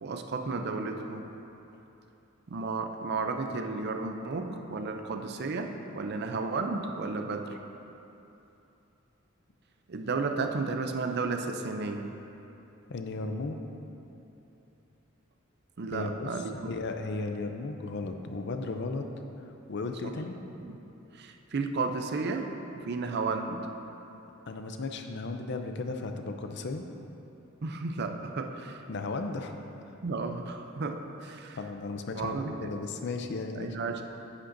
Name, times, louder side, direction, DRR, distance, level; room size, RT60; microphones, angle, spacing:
voice 1, 0.0-1.3 2.5-7.6 9.9-12.2 15.8-16.7 20.0-20.1 20.7-20.8 21.1-23.7 27.6-28.8 30.0-31.6 32.1-32.7 33.5-34.0, right 3 dB, 55° right, 5 dB, 0.5 m, -33 dB
voice 2, 12.9-13.6 15.9-19.0 19.7-20.4 24.5-26.8 28.9-29.6 31.6-32.3 32.6-33.8, left 3 dB, 55° left, 5 dB, 0.5 m, -35 dB
9.7 x 8.6 x 2.6 m, 2.9 s
head